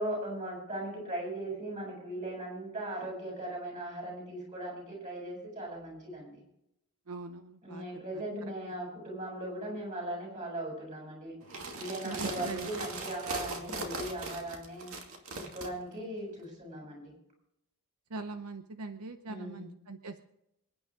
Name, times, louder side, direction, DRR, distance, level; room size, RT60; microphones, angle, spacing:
voice 1, 0.0-6.4 7.6-11.4 11.8-14.9 15.3-17.1 19.3-19.7, right 1 dB, 35° right, -2 dB, 7.7 m, -38 dB
voice 2, 7.1-7.8 8.1-8.2 12.0-12.7 18.1-20.3, right 3 dB, 85° right, 8 dB, 0.9 m, -41 dB
sound 1, 11.4-15.7, right 3 dB, 65° right, 2.4 m, -39 dB
26.5 x 9.9 x 3.8 m, 0.81 s
head